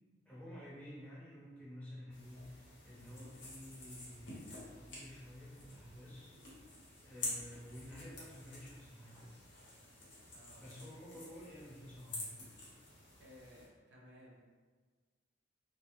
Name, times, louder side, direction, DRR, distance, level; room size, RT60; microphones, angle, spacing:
voice 1, 0.2-6.3 7.0-9.4 10.6-12.4, equal, 10° left, -9 dB, 0.8 m, -52 dB
sound 1, 2.1-13.7, left 1 dB, 75° left, 0.8 m, -49 dB
voice 2, 13.2-14.4, equal, 65° right, -3 dB, 0.5 m, -58 dB
2.1 x 2.1 x 2.9 m, 1.4 s
head